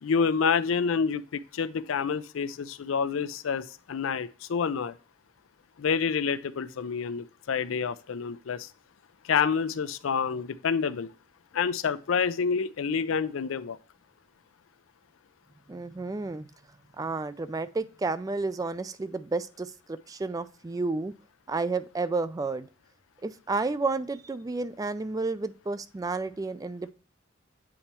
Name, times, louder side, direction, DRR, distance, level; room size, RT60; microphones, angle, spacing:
voice 1, 0.0-5.0 5.8-8.7 9.2-11.1 11.5-13.8, left 6 dB, 85° left, 0.4 m, -28 dB
voice 2, 15.7-16.5 17.0-21.1 21.5-22.7 23.2-26.9, right 3 dB, 20° right, 0.3 m, -31 dB
8.6 x 4.4 x 2.9 m
head